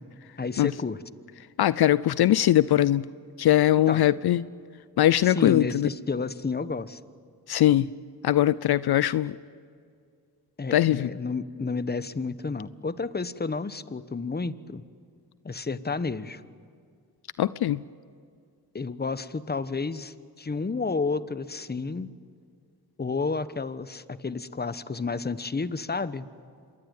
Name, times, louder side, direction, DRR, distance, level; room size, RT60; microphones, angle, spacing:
voice 1, 0.4-1.0 3.9-4.0 5.2-7.0 10.6-14.8 15.4-16.4 18.7-22.1 23.0-26.3, left 4 dB, 25° left, 14 dB, 1.1 m, -31 dB
voice 2, 1.6-3.1 3.4-4.4 5.0-5.9 7.5-7.9 8.2-9.3 10.7-11.1 17.4-17.8, left 13 dB, 70° left, 18 dB, 0.6 m, -21 dB
26.5 x 21.0 x 9.4 m, 2.2 s
cardioid pair, 65°, 40 cm